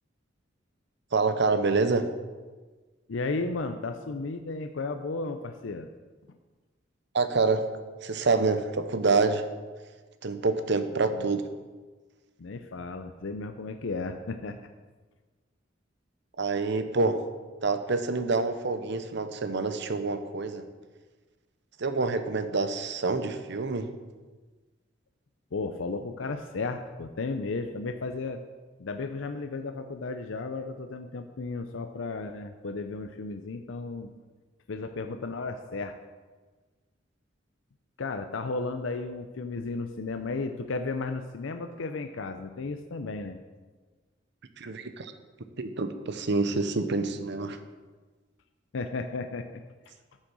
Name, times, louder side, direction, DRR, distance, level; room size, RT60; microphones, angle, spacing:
voice 1, 1.1-2.1 7.1-7.7 8.0-9.4 10.2-11.4 16.4-17.2 17.6-20.6 21.8-23.9 44.6-45.1 45.6-47.6, right 3 dB, 65° right, 10 dB, 0.8 m, -27 dB
voice 2, 3.1-5.9 10.9-11.3 12.4-14.6 25.5-28.4 28.8-34.1 34.7-36.0 38.0-43.4 48.7-49.6, left 3 dB, 80° left, 7 dB, 0.6 m, -34 dB
9.8 x 6.6 x 6.2 m, 1.3 s
head